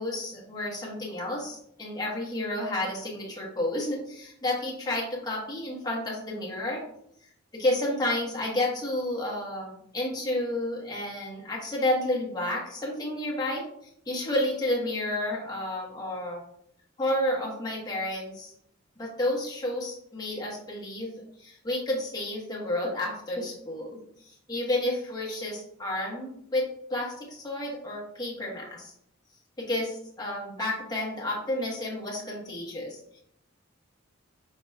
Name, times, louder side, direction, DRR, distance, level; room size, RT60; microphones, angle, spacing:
voice 1, 0.0-6.8 7.5-13.6 14.1-16.4 17.0-18.5 19.0-21.1 21.4-24.0 24.2-28.9 29.6-33.2, left 1 dB, 20° left, -4 dB, 1.3 m, -31 dB
5.6 x 4.0 x 2.4 m, 0.70 s
head